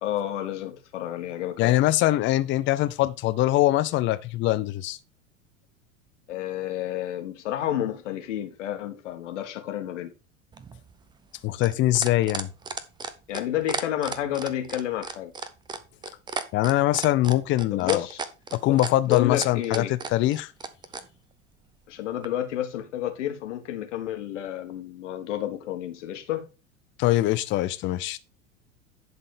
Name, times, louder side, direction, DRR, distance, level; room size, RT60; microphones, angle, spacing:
voice 1, 0.0-1.7 6.3-10.1 13.3-15.3 17.7-18.3 18.7-18.8 19.1-19.9 21.9-26.5, left 11 dB, 60° left, 1.7 m, -30 dB
voice 2, 1.6-5.0 11.4-12.5 16.5-18.0 18.5-20.5 27.0-28.2, left 16 dB, 30° left, 0.6 m, -23 dB
sound 1, 10.5-21.1 22.2-22.3, right 4 dB, 10° right, 0.6 m, -34 dB
11.0 x 4.1 x 5.1 m
figure-of-eight pair, 85°, 41 cm